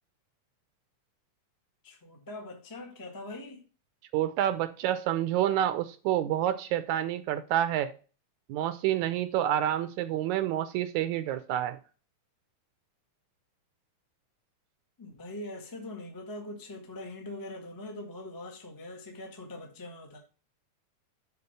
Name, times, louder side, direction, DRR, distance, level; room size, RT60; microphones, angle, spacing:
voice 1, 1.8-3.6 15.0-20.2, left 2 dB, 15° left, 0.6 m, -42 dB
voice 2, 4.1-7.9 8.5-11.8, right 11 dB, 80° right, 1.9 m, -28 dB
6.9 x 4.7 x 6.6 m
omnidirectional pair, 3.5 m